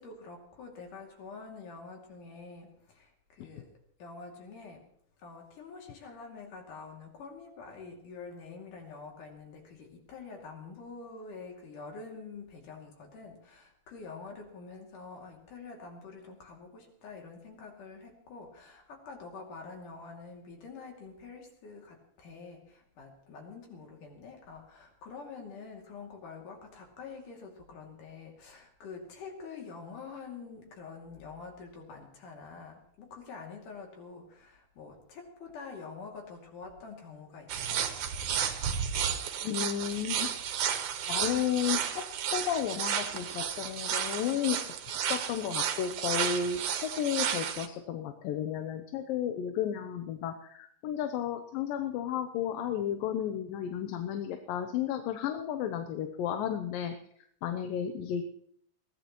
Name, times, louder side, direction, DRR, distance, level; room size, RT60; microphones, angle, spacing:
voice 1, 0.0-3.7 4.0-4.8 5.2-37.9, left 4 dB, 65° left, 1 dB, 4.1 m, -46 dB
sound 1, 37.5-47.7, right 8 dB, 70° right, 2.5 m, -32 dB
voice 2, 39.4-40.3 41.1-42.0 42.3-44.6 45.0-56.9 57.4-58.2, left 9 dB, 85° left, 6 dB, 2.6 m, -33 dB
22.0 x 16.0 x 3.1 m, 0.65 s
omnidirectional pair, 3.9 m